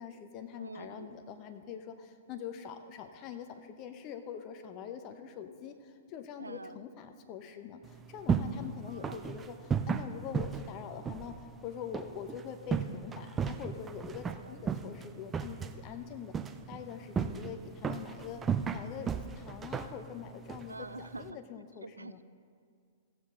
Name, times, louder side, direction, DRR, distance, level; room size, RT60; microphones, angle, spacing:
voice 1, 0.0-18.4 18.7-19.1 19.4-22.2, left 8 dB, 35° left, 7 dB, 0.8 m, -44 dB
voice 2, 0.5-1.1 6.4-6.8 8.9-9.2 14.4-14.5 20.7-21.4 21.8-22.2, right 3 dB, 85° right, 14 dB, 0.3 m, -45 dB
sound 1, 7.8-21.3, right 6 dB, 15° right, 0.4 m, -36 dB
15.5 x 7.4 x 3.8 m, 2.2 s
figure-of-eight pair, 110°, 0 cm